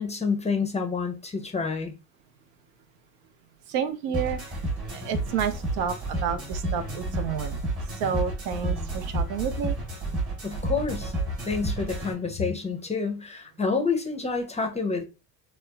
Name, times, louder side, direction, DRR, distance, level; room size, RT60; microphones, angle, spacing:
voice 1, 0.0-1.9 10.4-11.1 11.4-15.0, left 4 dB, 15° left, 0.4 m, -28 dB
voice 2, 3.7-4.6 4.9-7.6 8.0-9.8, right 8 dB, 90° right, 0.6 m, -30 dB
sound 1, 4.1-12.1, right 1 dB, 30° right, 0.9 m, -31 dB
2.8 x 2.0 x 2.2 m
supercardioid pair, 80°, 49 cm